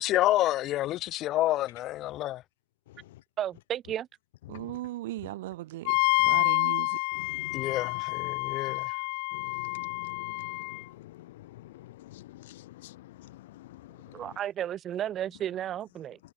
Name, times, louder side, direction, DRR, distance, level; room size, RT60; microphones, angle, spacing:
voice 1, 0.0-2.4 7.5-9.0, left 15 dB, 45° left, 0.7 m, -28 dB
voice 2, 3.4-4.1 14.1-16.2, right 11 dB, 40° right, 5.1 m, -33 dB
voice 3, 4.5-6.0 6.3-7.0, right 16 dB, 85° right, 0.8 m, -37 dB
Wind instrument woodwind instrument, 5.9-10.8, left 37 dB, 65° left, 1.1 m, -28 dB
voice 4, 7.2-7.6 9.3-10.8 11.2-11.3 11.7-11.9 12.1-13.0 13.6-13.7, left 16 dB, 85° left, 0.4 m, -47 dB
supercardioid pair, 115°, 0 cm